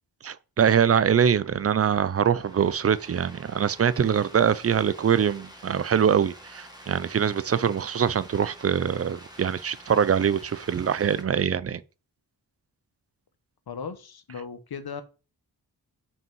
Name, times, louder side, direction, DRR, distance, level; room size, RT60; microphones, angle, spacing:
voice 1, 0.2-11.8, right 8 dB, 40° right, 0.4 m, -23 dB
sound 1, 1.2-11.2, equal, 10° right, 1.7 m, -48 dB
voice 2, 13.7-15.0, left 6 dB, 70° left, 1.0 m, -37 dB
5.6 x 5.4 x 4.6 m
wide cardioid pair, 95°, 39 cm